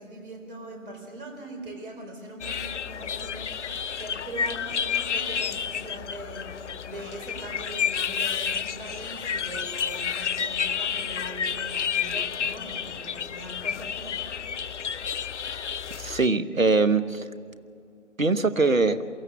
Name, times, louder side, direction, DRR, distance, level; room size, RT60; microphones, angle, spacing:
voice 1, 0.0-14.9, right 1 dB, 40° right, 3 dB, 4.3 m, -41 dB
sound 1, 2.4-16.3, left 7 dB, 60° left, 0.5 m, -30 dB
voice 2, 16.0-17.2 18.2-19.0, right 3 dB, 90° right, 13 dB, 1.1 m, -22 dB
23.0 x 15.0 x 8.2 m, 2.5 s
figure-of-eight pair, 140°, 39 cm